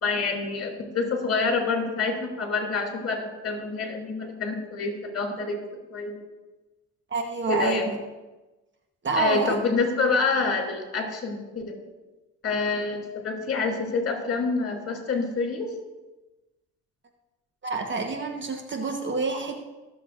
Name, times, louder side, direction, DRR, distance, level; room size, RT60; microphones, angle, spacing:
voice 1, 0.0-5.6 5.9-6.2 7.5-7.9 9.2-11.8 12.4-15.7, left 4 dB, 50° left, 1 dB, 3.0 m, -27 dB
voice 2, 7.1-8.0 9.0-9.6 17.6-19.5, right 4 dB, 40° right, 4 dB, 1.3 m, -27 dB
22.5 x 7.5 x 2.6 m, 1.1 s
cardioid pair, 90°, 30 cm